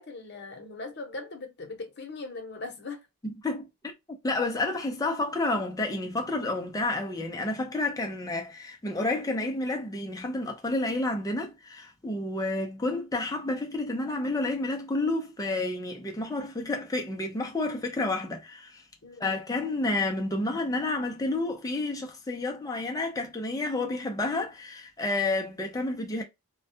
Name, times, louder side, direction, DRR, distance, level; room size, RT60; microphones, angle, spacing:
voice 1, 0.0-3.0 19.0-19.3, left 3 dB, 50° left, 0.8 m, -40 dB
voice 2, 3.2-3.7 4.1-18.8 19.2-26.2, left 2 dB, 15° left, 0.4 m, -30 dB
2.2 x 2.1 x 2.6 m
head